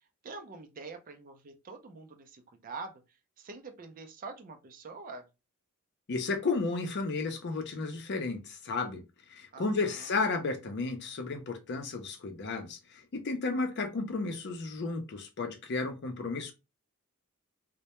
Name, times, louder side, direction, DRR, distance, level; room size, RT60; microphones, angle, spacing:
voice 1, 0.2-3.0 3.4-5.3 9.5-10.1, right 4 dB, 40° right, 0.4 m, -45 dB
voice 2, 6.1-9.0 9.3-16.5, left 3 dB, 50° left, 0.5 m, -33 dB
2.1 x 2.1 x 2.8 m
head